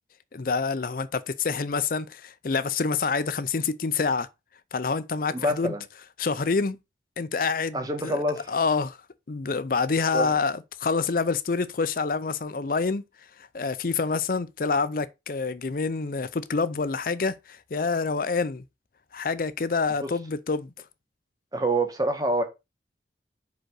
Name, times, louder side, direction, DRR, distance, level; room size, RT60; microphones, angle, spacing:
voice 1, 0.3-4.3 4.7-5.7 6.2-6.8 7.2-9.0 9.3-13.0 13.4-18.6 19.1-20.7, left 4 dB, 50° left, 0.5 m, -27 dB
voice 2, 5.3-5.8 7.7-8.5 10.1-10.3 20.0-20.1 21.5-22.4, right 1 dB, 20° right, 1.4 m, -26 dB
5.2 x 5.0 x 6.2 m
head